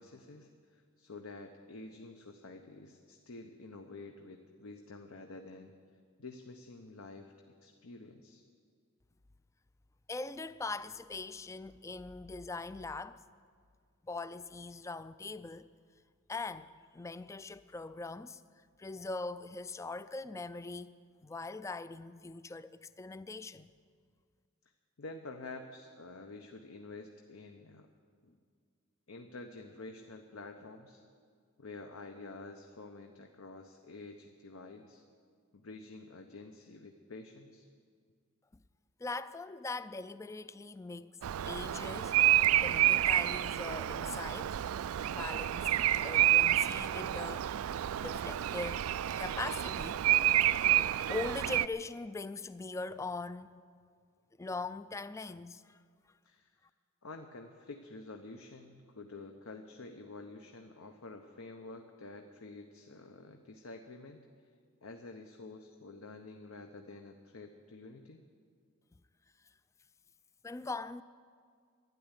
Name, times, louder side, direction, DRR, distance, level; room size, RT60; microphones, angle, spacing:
voice 1, 0.0-5.8 6.2-8.4 25.0-27.9 28.2-28.4 29.1-31.0 31.6-35.0 35.5-37.7 56.2-56.6 57.0-64.2 64.8-68.2, left 3 dB, 75° left, 0.9 m, -49 dB
voice 2, 10.1-13.2 14.0-15.7 16.3-18.4 18.8-20.9 21.2-23.7 39.0-41.2 41.5-42.2 42.6-44.6 45.1-47.5 48.0-50.3 51.1-53.6 54.4-55.8 70.4-71.0, left 3 dB, 15° left, 0.3 m, -41 dB
Bird vocalization bird call bird song, 41.2-51.7, right 13 dB, 80° right, 0.3 m, -29 dB
12.5 x 10.5 x 9.8 m
head